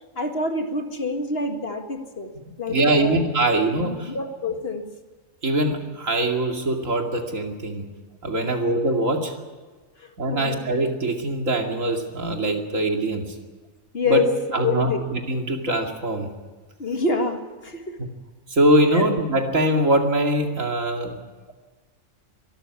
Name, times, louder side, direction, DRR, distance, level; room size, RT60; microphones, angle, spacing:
voice 1, 0.2-2.3 2.6-3.2 3.8-4.9 8.4-8.6 10.0-10.6 13.9-14.3 14.6-15.1 16.8-18.0 18.9-19.1, left 3 dB, 50° left, 6 dB, 2.1 m, -27 dB
voice 2, 2.7-4.1 5.4-7.9 8.2-9.3 10.2-13.2 14.1-16.3 18.0-18.1 18.5-21.2, right 1 dB, 80° right, 3 dB, 2.8 m, -22 dB
23.5 x 13.0 x 9.5 m, 1.4 s
omnidirectional pair, 1.3 m